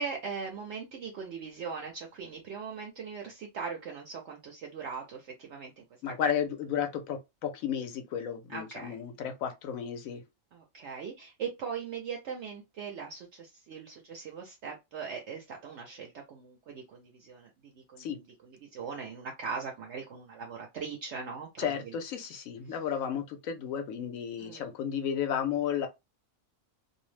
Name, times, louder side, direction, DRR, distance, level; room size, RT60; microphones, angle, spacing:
voice 1, 0.0-5.8 8.5-9.0 10.5-18.1 18.5-21.9 24.4-24.7, right 5 dB, 65° right, 0.8 m, -40 dB
voice 2, 6.0-10.2 18.0-18.2 21.6-25.9, left 8 dB, 80° left, 1.0 m, -33 dB
2.6 x 2.0 x 3.1 m
omnidirectional pair, 1.4 m